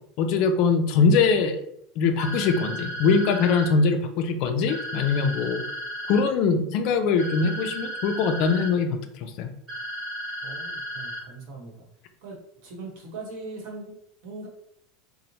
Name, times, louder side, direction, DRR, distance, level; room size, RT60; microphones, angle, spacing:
voice 1, 0.2-1.6 2.0-5.6 6.1-9.5, left 5 dB, 45° left, 6 dB, 0.3 m, -22 dB
sound 1, 2.2-3.7 4.7-6.2 7.2-8.7 9.7-11.2, right 1 dB, 15° right, 1.4 m, -34 dB
voice 2, 10.4-11.7 12.2-12.4 12.6-13.9 14.2-14.5, right 3 dB, 55° right, -1 dB, 0.9 m, -39 dB
3.0 x 2.0 x 2.6 m, 0.73 s
supercardioid pair, 170°, 0 cm